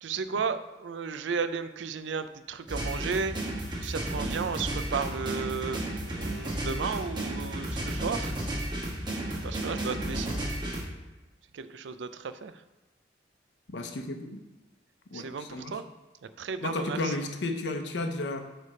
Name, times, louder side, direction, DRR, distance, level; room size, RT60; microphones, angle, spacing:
voice 1, 0.0-3.3 3.8-8.4 9.4-10.6 11.5-12.6 15.1-15.8 16.2-17.2, right 5 dB, 90° right, 12 dB, 0.4 m, -34 dB
sound 1, 2.7-10.8, right 1 dB, 25° right, 1.1 m, -33 dB
voice 2, 13.7-14.4 15.1-15.7 16.6-18.4, left 2 dB, 80° left, 5 dB, 0.7 m, -33 dB
8.3 x 3.4 x 4.9 m, 1.1 s
head